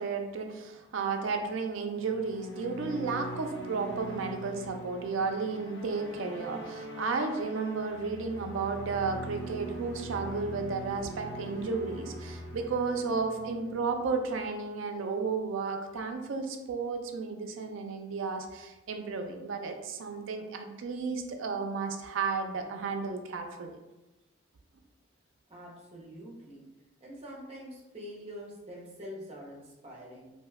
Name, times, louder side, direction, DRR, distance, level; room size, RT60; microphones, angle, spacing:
voice 1, 0.0-23.8, right 4 dB, 75° right, 4 dB, 0.4 m, -33 dB
sound 1, 1.9-14.4, right 1 dB, 55° left, 0.6 m, -43 dB
voice 2, 25.5-26.6 27.0-30.3, equal, 30° right, -4 dB, 0.7 m, -45 dB
2.7 x 2.2 x 3.3 m, 1.0 s
head